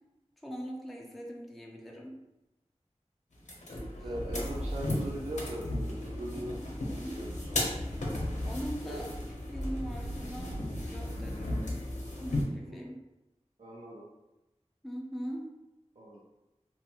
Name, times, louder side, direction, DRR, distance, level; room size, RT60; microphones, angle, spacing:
voice 1, 0.4-2.2 4.0-4.1 7.0-7.3 8.4-11.9 12.2-13.0 14.8-15.5, equal, ahead, -1 dB, 0.4 m, -41 dB
sound 1, 3.4-12.4, left 1 dB, 85° left, 0.6 m, -35 dB
voice 2, 4.0-6.6 6.9-7.8 8.8-9.0 12.7-12.8 13.6-14.0 16.0-16.2, right 1 dB, 65° right, -6 dB, 0.5 m, -40 dB
2.5 x 2.5 x 2.7 m, 0.98 s
wide cardioid pair, 50°, 12 cm